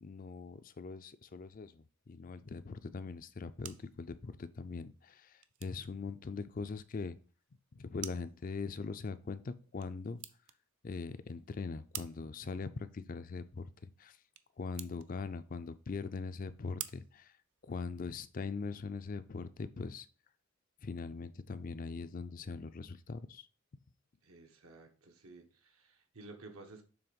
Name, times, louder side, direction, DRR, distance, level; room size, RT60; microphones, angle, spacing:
voice 1, 0.0-7.2 7.7-10.2 10.8-13.7 14.0-14.2 14.6-17.3 17.7-20.1 20.8-23.5, left 4 dB, 40° left, 12 dB, 0.4 m, -41 dB
sound 1, 3.2-18.1, right 12 dB, 60° right, 0.5 m, -53 dB
voice 2, 24.2-26.8, right 3 dB, 80° right, 4 dB, 1.3 m, -53 dB
7.0 x 3.4 x 5.2 m, 0.37 s
head